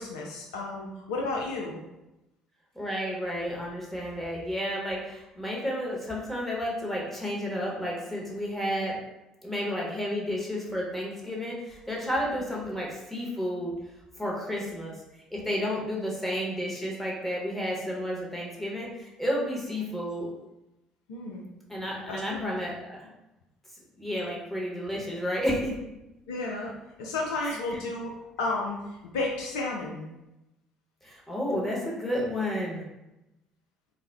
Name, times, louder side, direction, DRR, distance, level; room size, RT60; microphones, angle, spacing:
voice 1, 0.0-1.8 21.1-21.4 22.1-22.5 26.3-30.1, left 2 dB, 75° left, -2 dB, 0.3 m, -33 dB
voice 2, 2.7-9.0 9.4-13.7 14.2-15.0 15.3-20.3 21.7-23.1 24.0-25.7 27.4-27.8 31.0-32.8, equal, 5° left, -4 dB, 1.0 m, -31 dB
2.3 x 2.0 x 3.4 m, 0.94 s
figure-of-eight pair, 55°, 3 cm